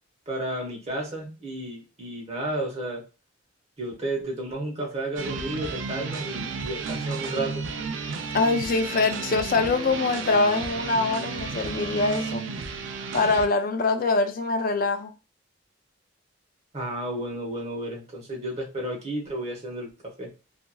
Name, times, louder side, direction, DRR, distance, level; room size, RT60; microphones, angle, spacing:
voice 1, 0.3-3.0 3.8-7.6 16.7-19.9 20.2-20.3, right 1 dB, 35° right, 1.0 m, -32 dB
sound 1, 5.2-13.5, right 5 dB, 80° right, 0.4 m, -33 dB
voice 2, 8.3-12.4 13.1-15.1, left 3 dB, 45° left, 0.4 m, -24 dB
2.9 x 2.5 x 2.2 m
head